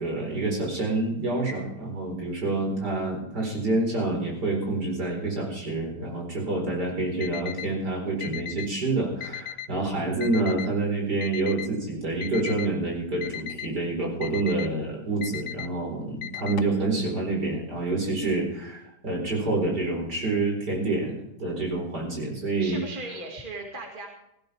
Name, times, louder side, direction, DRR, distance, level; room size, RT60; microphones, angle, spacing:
voice 1, 0.0-22.8, right 2 dB, 75° right, -1 dB, 5.1 m, -27 dB
Alarm, 7.2-7.7 8.2-8.7 9.2-9.7 10.2-10.7 11.2-11.7 12.2-12.7 13.2-13.7 14.2-14.7 15.2-15.7 16.2-16.8, left 10 dB, 75° left, 1.2 m, -36 dB
voice 2, 22.6-24.1, right 2 dB, 30° right, 0 dB, 2.4 m, -37 dB
17.5 x 15.0 x 3.5 m, 0.80 s
omnidirectional pair, 1.8 m